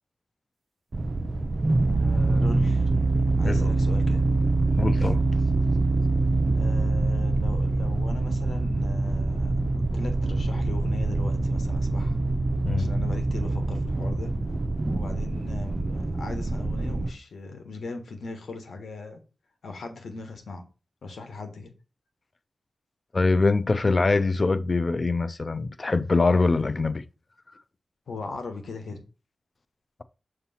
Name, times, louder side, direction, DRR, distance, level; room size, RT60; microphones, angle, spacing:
sound 1, 0.9-17.1, right 2 dB, 45° right, 0.5 m, -25 dB
voice 1, 1.9-2.9 3.4-4.2 6.5-12.2 12.7-14.3 14.9-19.2 19.6-20.6 21.0-21.7 28.1-29.0, left 3 dB, 90° left, 1.2 m, -38 dB
voice 2, 4.8-5.2 12.6-12.9 23.1-27.0, left 3 dB, 45° left, 0.5 m, -23 dB
6.6 x 2.9 x 5.6 m
cardioid pair, 60°, 0 cm